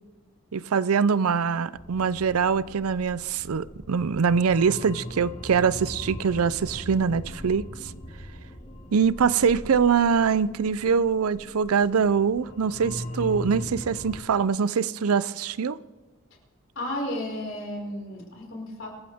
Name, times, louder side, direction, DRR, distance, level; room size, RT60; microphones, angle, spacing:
voice 1, 0.5-7.6 8.9-15.8, right 6 dB, 85° right, 18 dB, 0.5 m, -23 dB
sound 1, 1.7-14.2, left 1 dB, 30° left, 1.6 m, -40 dB
voice 2, 16.8-18.9, left 1 dB, 60° left, -2 dB, 5.2 m, -33 dB
26.0 x 13.5 x 3.6 m, 1.3 s
head